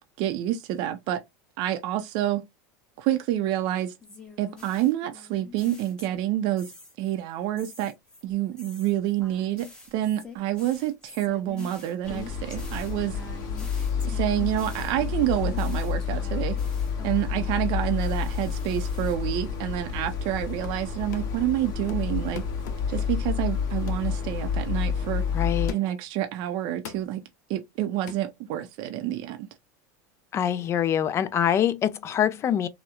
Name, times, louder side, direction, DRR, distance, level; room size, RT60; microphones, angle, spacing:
voice 1, 0.2-1.2 1.6-2.4 3.0-3.9 4.4-6.7 7.0-7.9 8.2-13.2 14.0-16.6 17.0-22.4 22.9-25.2 25.7-27.2 27.5-29.5, right 13 dB, 55° right, 0.5 m, -28 dB
sound 1, 4.0-6.3 6.6-7.1 7.6-17.7 18.0-19.1, left 4 dB, 10° left, 0.8 m, -46 dB
sound 2, 12.0-25.7, left 6 dB, 50° left, 0.8 m, -29 dB
sound 3, 20.6-20.9 21.1-21.5 21.9-23.3 23.9-24.1 24.6-24.8 25.7-26.1 26.9-27.2 28.1-28.3, left 8 dB, 80° left, 0.5 m, -43 dB
voice 2, 25.3-25.7 30.3-32.7, left 9 dB, 30° left, 0.3 m, -24 dB
2.8 x 2.0 x 2.3 m
supercardioid pair, 120°, 9 cm